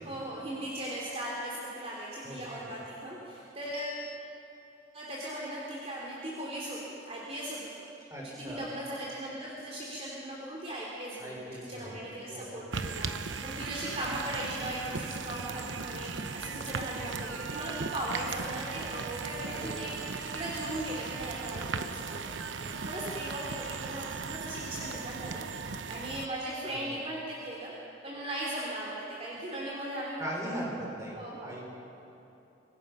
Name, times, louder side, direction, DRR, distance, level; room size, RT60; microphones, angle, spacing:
voice 1, 0.0-4.0 4.9-22.3 22.8-30.3 31.1-31.6, right 1 dB, 35° right, -5 dB, 3.3 m, -38 dB
voice 2, 2.2-2.9 8.1-8.6 11.2-11.9 12.3-12.8 19.4-20.0 26.7-27.0 30.2-31.6, right 1 dB, 15° right, -3 dB, 5.7 m, -40 dB
sound 1, 12.7-26.3, right 5 dB, 85° right, 0.9 m, -37 dB
26.0 x 21.5 x 5.7 m, 3.0 s
head